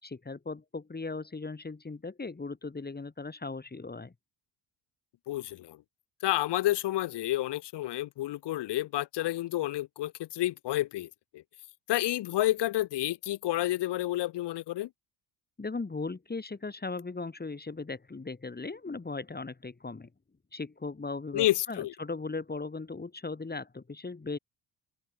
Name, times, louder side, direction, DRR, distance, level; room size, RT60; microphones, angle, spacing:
voice 1, 0.0-4.1 15.6-20.1 20.5-24.4, left 3 dB, 20° left, 5.0 m, -38 dB
voice 2, 5.3-5.8 6.2-11.4 11.9-14.9 21.3-21.9, left 15 dB, 65° left, 1.1 m, -30 dB
cardioid pair, 100°, 45 cm